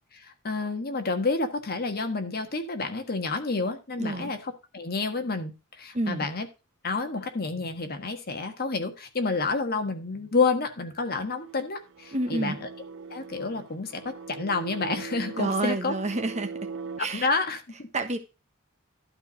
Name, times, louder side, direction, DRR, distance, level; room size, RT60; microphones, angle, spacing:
voice 1, 0.1-6.5 6.8-12.7 13.1-14.0 14.3-15.9 17.1-17.9, left 3 dB, 45° left, 6 dB, 1.5 m, -29 dB
voice 2, 4.0-4.3 5.9-6.3 12.1-12.6 15.4-16.5 17.0-17.3 17.9-18.2, right 2 dB, 35° right, 7 dB, 1.2 m, -29 dB
sound 1, 11.0-17.0, right 5 dB, 65° right, 0.6 m, -41 dB
12.0 x 4.3 x 6.3 m, 0.29 s
head